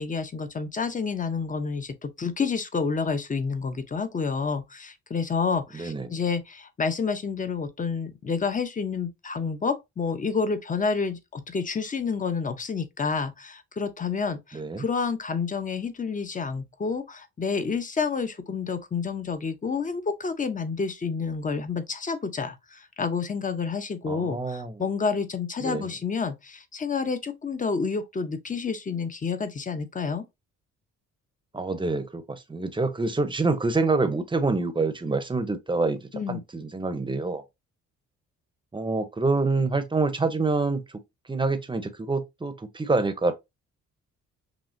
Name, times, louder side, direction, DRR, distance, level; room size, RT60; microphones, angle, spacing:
voice 1, 0.0-30.2 36.1-36.4, left 5 dB, 25° left, 0.7 m, -29 dB
voice 2, 5.7-6.2 14.5-14.8 24.1-24.8 25.6-25.9 31.5-37.4 38.7-40.8 41.3-43.3, right 3 dB, 15° right, 0.8 m, -26 dB
5.9 x 2.4 x 2.6 m
cardioid pair, 90°, 30 cm